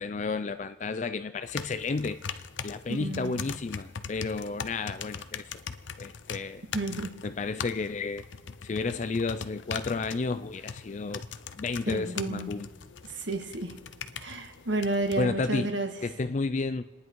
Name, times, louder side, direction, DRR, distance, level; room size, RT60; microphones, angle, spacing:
voice 1, 0.0-5.5 6.0-6.6 7.2-8.2 8.6-11.2 11.5-12.7 15.2-15.7 16.0-16.8, left 4 dB, 40° left, 11 dB, 0.4 m, -32 dB
sound 1, 1.5-15.2, left 6 dB, 80° left, 0.7 m, -41 dB
voice 2, 2.9-3.4 6.7-7.1 11.9-12.5 13.1-13.7 14.2-15.9, right 2 dB, 75° right, 5 dB, 1.7 m, -31 dB
28.5 x 10.0 x 4.6 m, 1.4 s
head